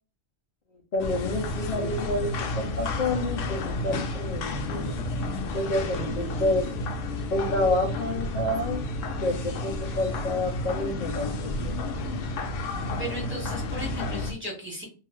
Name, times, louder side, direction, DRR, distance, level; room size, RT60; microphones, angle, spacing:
voice 1, 0.9-4.9 5.5-6.8 7.3-8.8 9.2-11.6, left 1 dB, 50° left, -1 dB, 0.6 m, -29 dB
sound 1, 1.0-14.3, left 2 dB, 80° left, 0.9 m, -31 dB
voice 2, 13.0-14.8, right 1 dB, 10° right, -3 dB, 1.2 m, -36 dB
2.7 x 2.4 x 3.1 m, 0.34 s
omnidirectional pair, 1.3 m